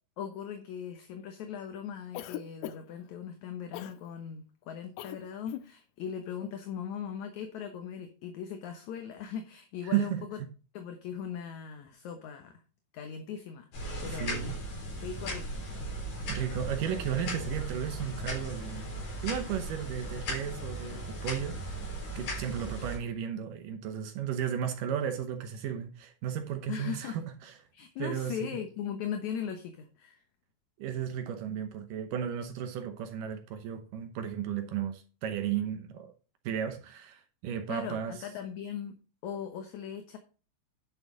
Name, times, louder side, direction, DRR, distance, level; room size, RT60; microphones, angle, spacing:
voice 1, 0.2-10.4 10.7-12.6 12.9-14.5 15.0-15.6 26.7-27.2 27.7-30.2 37.7-38.9 39.2-40.2, left 8 dB, 65° left, 2.3 m, -39 dB
Cough, 2.1-3.0 3.7-4.0 5.0-5.2 5.4-5.7, left 12 dB, 90° left, 1.6 m, -39 dB
voice 2, 9.9-10.2 14.0-14.6 16.3-21.8 22.2-27.5 28.0-28.6 30.8-36.1 36.4-38.2, right 9 dB, 75° right, 2.4 m, -34 dB
sound 1, 13.7-23.0, equal, 50° left, 5.3 m, -37 dB
11.0 x 6.7 x 3.9 m
omnidirectional pair, 4.0 m